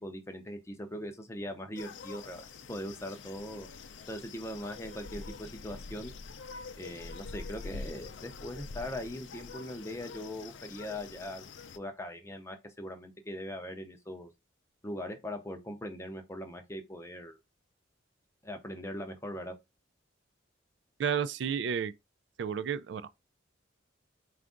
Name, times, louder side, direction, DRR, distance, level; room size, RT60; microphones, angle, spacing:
voice 1, 0.0-3.7 4.1-6.1 6.8-11.5 11.7-14.3 14.8-17.4 18.4-19.6, left 1 dB, 15° left, 0.5 m, -40 dB
sound 1, 1.8-11.8, left 4 dB, 75° left, 0.5 m, -45 dB
voice 2, 21.0-21.9 22.4-23.1, right 7 dB, 65° right, 0.3 m, -31 dB
4.4 x 2.4 x 3.7 m
head